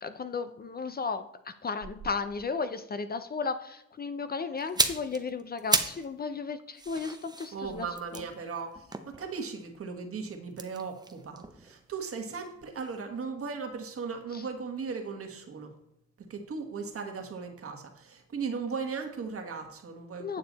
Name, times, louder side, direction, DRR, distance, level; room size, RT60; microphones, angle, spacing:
voice 1, 0.0-7.9 8.1-8.2 14.3-14.4 20.2-20.4, left 5 dB, 30° left, 10 dB, 0.6 m, -34 dB
sound 1, 4.6-6.1 6.4-9.7 10.5-12.5 12.8-13.0, right 3 dB, 15° right, 0.8 m, -33 dB
voice 2, 7.5-15.7 16.3-20.4, right 5 dB, 50° right, 5 dB, 1.5 m, -37 dB
8.9 x 6.8 x 4.0 m, 0.78 s
cardioid pair, 90°, 30 cm